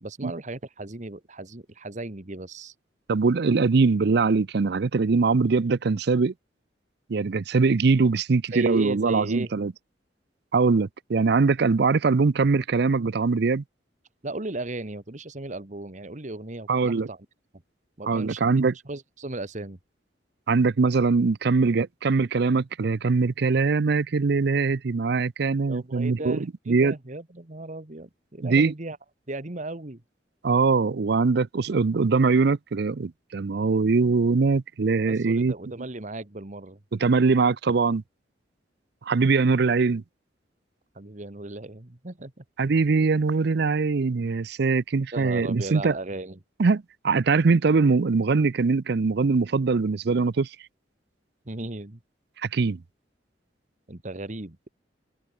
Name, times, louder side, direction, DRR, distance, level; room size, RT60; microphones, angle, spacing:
voice 1, 0.0-2.7 8.5-9.5 14.2-17.3 18.0-18.4 18.8-19.8 25.7-29.0 29.3-30.0 35.1-36.8 40.9-42.4 45.1-46.4 51.4-52.0 53.9-54.7, right 2 dB, 40° right, 1.5 m, -36 dB
voice 2, 3.1-6.3 7.1-9.7 10.5-13.6 16.7-17.1 18.1-18.7 20.5-26.9 28.4-28.7 30.4-35.5 36.9-38.0 39.1-40.0 42.6-45.9 46.6-50.5 52.5-52.8, right 4 dB, 60° right, 0.5 m, -22 dB
head